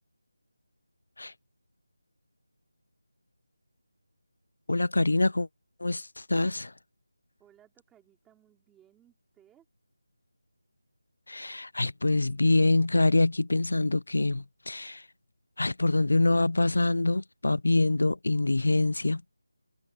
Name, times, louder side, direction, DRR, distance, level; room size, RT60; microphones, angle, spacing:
voice 1, 4.7-5.5 5.8-6.7 11.3-15.1 15.6-19.4, left 2 dB, 70° left, 0.6 m, -25 dB
voice 2, 7.4-9.7, right 11 dB, 5° right, 4.2 m, -62 dB
figure-of-eight pair, 180°, 0 cm